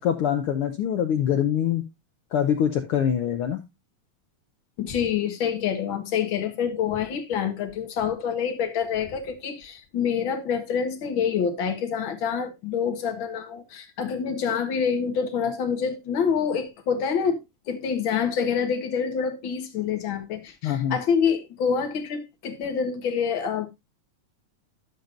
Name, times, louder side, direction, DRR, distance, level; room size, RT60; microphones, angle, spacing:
voice 1, 0.0-1.8 2.3-3.6 20.6-21.0, left 9 dB, 70° left, 1.4 m, -24 dB
voice 2, 4.8-17.4 17.7-23.7, left 7 dB, 50° left, 1.8 m, -26 dB
12.0 x 7.2 x 2.5 m
omnidirectional pair, 3.3 m